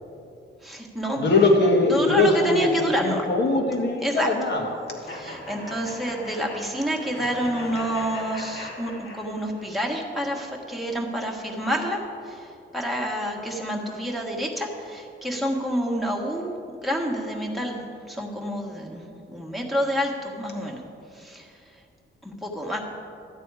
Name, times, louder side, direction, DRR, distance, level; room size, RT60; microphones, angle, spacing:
voice 1, 0.6-1.2 1.9-3.2 4.0-4.3 5.1-16.5 16.8-19.0 19.3-20.8 21.1-21.5 22.2-22.8, equal, ahead, -1 dB, 1.5 m, -28 dB
voice 2, 1.2-5.0, left 3 dB, 60° left, 2 dB, 1.8 m, -21 dB
sound 1, 5.1-9.7, left 1 dB, 75° left, 2.8 m, -39 dB
12.5 x 9.0 x 4.8 m, 2.6 s
wide cardioid pair, 125°, 20 cm